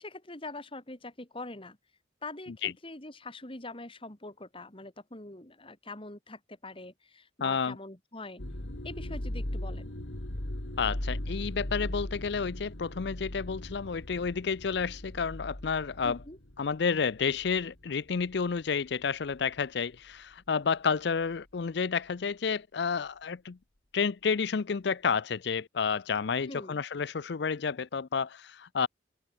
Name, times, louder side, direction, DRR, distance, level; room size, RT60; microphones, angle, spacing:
voice 1, 0.0-1.8 2.2-8.4 8.8-9.9 16.0-16.4 26.5-26.8, left 2 dB, 30° left, 2.9 m, -44 dB
voice 2, 7.4-7.8 10.8-16.2 16.6-23.6 23.9-28.9, left 5 dB, 60° left, 0.5 m, -30 dB
sound 1, 8.4-17.8 18.2-18.6 19.3-19.6, left 1 dB, 90° left, 2.8 m, -38 dB
open air
head